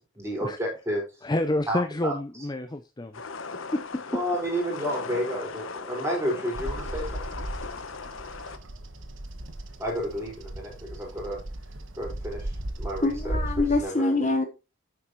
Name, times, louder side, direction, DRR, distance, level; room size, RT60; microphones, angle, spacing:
voice 1, 0.1-1.0 1.7-2.1 4.1-7.3 9.8-11.4 12.0-13.4 13.8-14.2, equal, 15° right, 4.9 m, -31 dB
voice 2, 1.2-3.2 3.5-4.2, left 1 dB, 20° left, 0.5 m, -29 dB
sound 1, 3.1-8.6, left 4 dB, 70° left, 1.0 m, -38 dB
Bird vocalization bird call bird song, 6.5-13.8, right 1 dB, 65° right, 1.3 m, -36 dB
voice 3, 13.0-14.5, left 2 dB, 35° left, 1.2 m, -25 dB
10.0 x 8.0 x 3.1 m
head